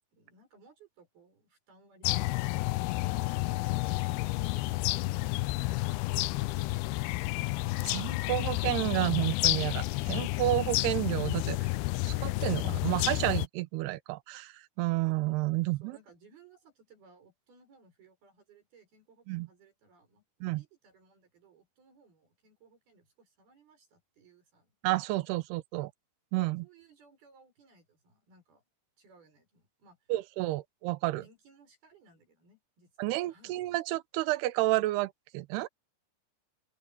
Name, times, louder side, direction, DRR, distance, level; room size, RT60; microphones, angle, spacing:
voice 1, 0.0-3.3 3.7-8.1 15.5-24.7 26.6-28.6 29.0-30.5 31.1-33.6, right 4 dB, 60° right, 8.7 m, -61 dB
sound 1, 2.0-13.5, left 20 dB, 80° left, 2.4 m, -30 dB
voice 2, 7.8-11.7 12.1-16.0 19.3-19.5 20.4-20.6 24.8-25.9 26.3-26.7 30.1-31.2 33.0-35.7, right 18 dB, 80° right, 2.7 m, -31 dB
open air
omnidirectional pair, 4.9 m